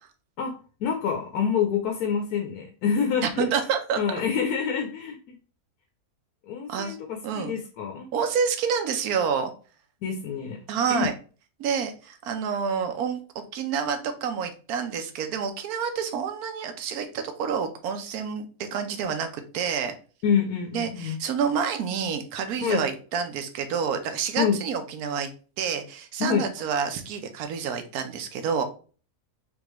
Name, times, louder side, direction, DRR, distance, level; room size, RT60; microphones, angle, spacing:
voice 1, 0.8-3.5 4.0-5.4 6.5-8.1 10.0-10.6 10.9-11.1 20.2-21.2 22.6-22.8 24.4-24.6 26.2-26.4, left 7 dB, 90° left, 3 dB, 1.2 m, -27 dB
voice 2, 3.2-4.0 6.7-7.0 7.2-7.6 8.1-9.5 10.7-11.1 11.6-13.2 13.5-19.9 20.7-25.3 25.6-28.6, right 6 dB, 80° right, 8 dB, 1.2 m, -28 dB
3.7 x 3.5 x 3.0 m, 0.38 s
omnidirectional pair, 1.6 m